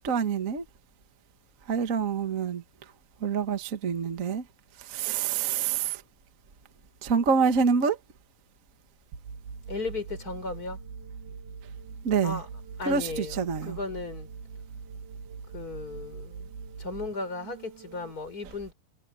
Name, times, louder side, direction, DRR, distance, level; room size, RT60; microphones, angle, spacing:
voice 1, 0.0-0.6 1.7-2.6 3.2-4.4 4.9-6.0 7.0-8.0 12.0-12.4 12.8-13.8, right 6 dB, 50° right, 0.9 m, -26 dB
sound 1, 9.1-18.1, right 5 dB, 80° right, 4.5 m, -42 dB
voice 2, 9.7-10.8 12.2-12.5 12.8-14.3 15.5-16.5 16.8-18.7, left 3 dB, 25° left, 4.7 m, -36 dB
omnidirectional pair, 4.3 m